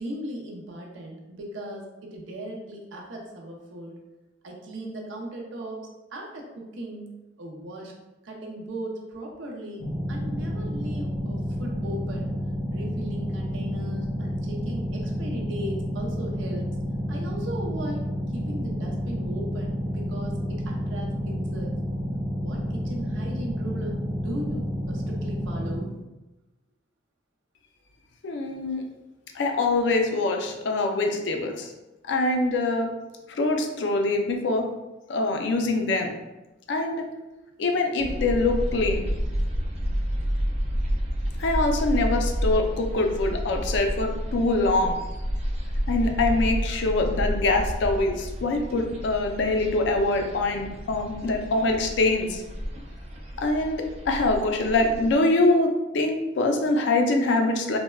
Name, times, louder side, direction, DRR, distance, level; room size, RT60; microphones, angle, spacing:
voice 1, 0.0-4.0 4.4-5.8 6.1-7.1 7.4-7.9 8.2-12.4 12.7-16.7 17.1-21.7 22.4-25.9, right 1 dB, 80° right, 0 dB, 0.6 m, -38 dB
sound 1, 9.8-25.8, equal, 85° left, 0.7 m, -30 dB
voice 2, 28.2-28.8 29.4-31.7 32.1-32.9 33.3-34.6 35.1-36.1 36.7-37.1 37.6-39.1 41.4-44.9 45.9-52.4 53.4-57.8, left 2 dB, 65° left, 3 dB, 0.4 m, -24 dB
sound 2, 38.0-55.1, equal, 35° right, 0.4 m, -30 dB
3.3 x 2.1 x 2.2 m, 1.0 s
head